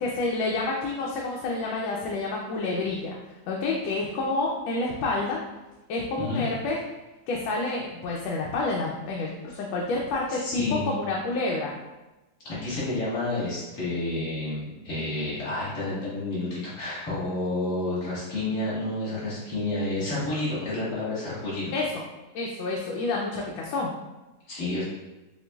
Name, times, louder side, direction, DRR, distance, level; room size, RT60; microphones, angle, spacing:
voice 1, 0.0-3.2 3.5-5.4 5.9-6.8 7.3-11.7 21.7-21.9 22.3-23.9, left 3 dB, 90° left, -2 dB, 1.3 m, -29 dB
voice 2, 10.4-10.9 12.4-21.7 24.5-24.8, left 2 dB, 45° left, -9 dB, 1.7 m, -30 dB
6.7 x 2.5 x 2.3 m, 1.1 s
omnidirectional pair, 2.0 m